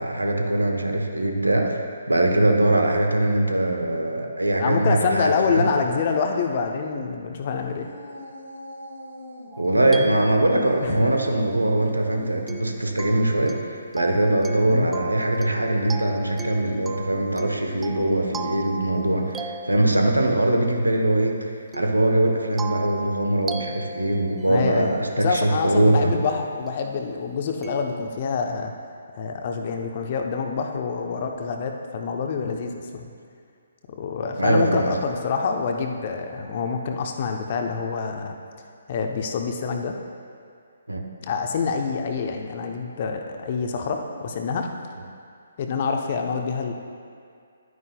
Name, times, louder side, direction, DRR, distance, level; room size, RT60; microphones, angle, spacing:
voice 1, 0.0-5.7 9.6-21.4 21.7-26.2 34.4-34.9 40.9-41.0, right 1 dB, 85° right, 2 dB, 1.0 m, -22 dB
voice 2, 4.6-7.9 9.8-10.1 10.8-11.1 14.7-14.9 24.5-24.9 25.2-28.7 29.1-33.1 33.9-38.4 38.9-40.0 41.2-44.7 45.6-46.7, left 5 dB, 40° left, 3 dB, 0.7 m, -26 dB
sound 1, 7.5-9.5 10.5-12.5 16.3-18.5, left 1 dB, 70° left, 1.7 m, -42 dB
sound 2, 9.5-11.0 12.5-20.4 21.7-25.1 26.7-26.8 27.6-28.1, right 3 dB, 10° right, 0.3 m, -38 dB
11.0 x 9.4 x 2.3 m, 2.3 s
figure-of-eight pair, 135°, 0 cm